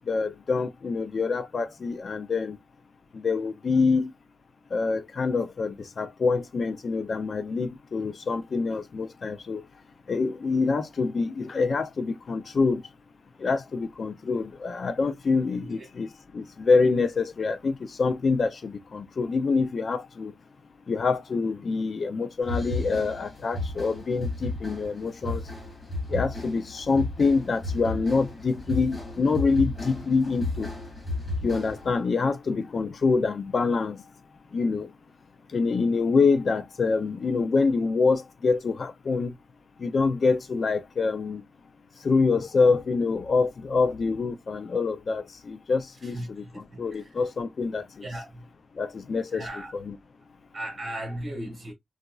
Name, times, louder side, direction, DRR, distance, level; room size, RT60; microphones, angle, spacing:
voice 1, 0.1-2.6 3.1-4.1 4.7-9.6 10.1-12.8 13.4-16.1 16.3-20.3 20.9-25.4 26.1-30.7 31.4-34.0 34.5-34.9 35.5-39.3 39.8-41.4 42.0-46.4 46.8-48.1 48.8-50.0, left 4 dB, 50° left, 0.4 m, -26 dB
sound 1, 22.4-32.0, left 2 dB, 20° left, 1.8 m, -34 dB
voice 2, 46.1-46.8 48.0-48.4 49.3-49.7 50.5-51.7, right 1 dB, 40° right, 1.5 m, -36 dB
3.9 x 2.4 x 2.3 m
wide cardioid pair, 140°, 0 cm